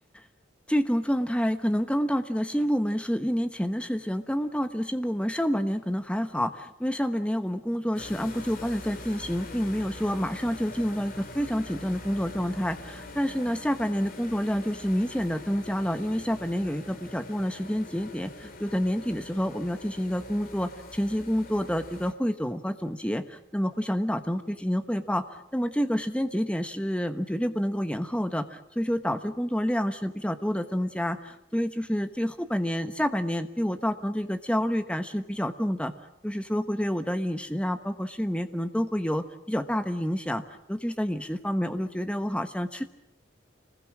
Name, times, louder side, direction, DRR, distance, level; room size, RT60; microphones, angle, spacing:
voice 1, 0.7-25.2 25.5-35.9 36.2-40.4 40.7-42.8, equal, 5° left, 9 dB, 1.1 m, -28 dB
sound 1, 7.9-22.1, left 2 dB, 45° left, 2.6 m, -43 dB
26.5 x 20.5 x 7.5 m, 0.83 s
head